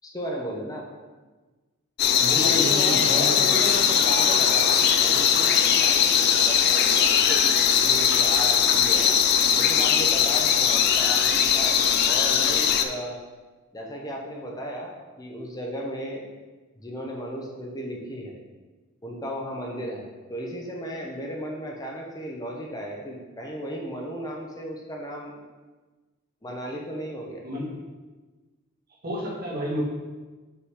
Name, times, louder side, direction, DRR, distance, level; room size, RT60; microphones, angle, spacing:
voice 1, 0.0-0.8 2.4-7.4 7.8-9.1 9.6-13.2 13.7-16.3 16.8-18.4 19.0-20.0 20.3-25.4 26.4-27.4, equal, 20° left, -1 dB, 0.8 m, -34 dB
sound 1, 2.0-12.9, left 8 dB, 50° left, 0.4 m, -20 dB
voice 2, 2.2-3.7 27.4-27.8 29.0-29.8, left 1 dB, 45° right, -6 dB, 2.0 m, -31 dB
5.6 x 3.9 x 4.8 m, 1.3 s
head